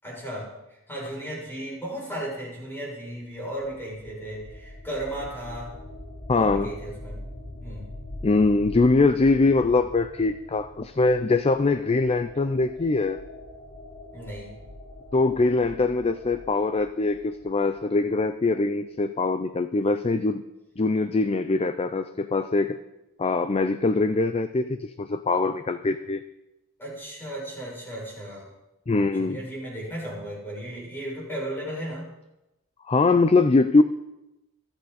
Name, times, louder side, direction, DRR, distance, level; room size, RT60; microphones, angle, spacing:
voice 1, 0.0-5.7 6.3-7.2 7.6-7.9 14.1-14.6 26.8-28.5 29.1-32.1, right 1 dB, 10° left, -4 dB, 6.7 m, -35 dB
sound 1, 3.3-18.1, left 1 dB, 80° left, 3.6 m, -43 dB
voice 2, 6.3-6.7 8.2-13.2 15.1-20.4 20.8-22.8 23.2-26.2 28.9-29.4 32.9-33.8, left 3 dB, 25° left, 11 dB, 0.4 m, -22 dB
26.0 x 9.0 x 4.2 m, 0.97 s
head